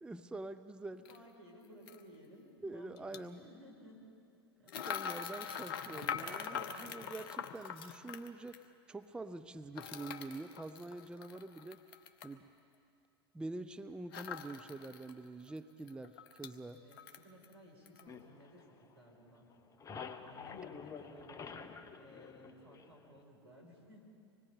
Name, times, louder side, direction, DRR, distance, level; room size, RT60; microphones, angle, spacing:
voice 1, 0.0-1.0 2.6-3.4 4.9-11.8 12.2-12.5 13.3-16.8 21.1-21.2, right 2 dB, 5° right, 11 dB, 0.5 m, -46 dB
voice 2, 0.9-4.0 4.6-5.3 6.7-7.2 16.7-19.5 20.2-24.1, equal, 85° right, 0 dB, 4.7 m, -58 dB
sound 1, 1.1-1.2 1.9-2.0 3.0-3.2 4.7-8.6 9.8-12.3 14.1-15.1 15.5-15.6 15.9-16.5 16.9-17.5 17.9-18.0, left 7 dB, 55° left, 1.1 m, -43 dB
sound 2, 18.1-19.2 19.5-23.2, left 6 dB, 25° left, 0.9 m, -49 dB
25.5 x 20.5 x 5.2 m, 2.4 s
figure-of-eight pair, 90°, 14 cm